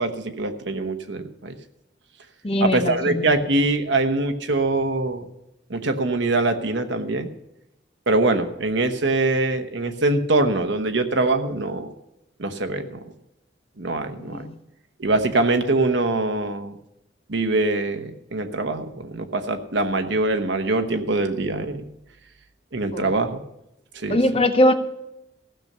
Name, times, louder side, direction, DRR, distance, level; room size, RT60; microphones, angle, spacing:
voice 1, 0.0-1.5 2.6-5.3 5.7-7.3 8.1-11.9 12.4-13.0 13.8-14.5 15.0-16.7 17.3-21.9 22.7-23.4 23.9-24.2, right 2 dB, 75° right, 7 dB, 1.1 m, -23 dB
voice 2, 2.4-3.2 14.3-14.5 22.9-23.0 24.1-24.7, left 1 dB, 30° left, 8 dB, 0.8 m, -20 dB
15.5 x 6.7 x 6.8 m, 0.87 s
head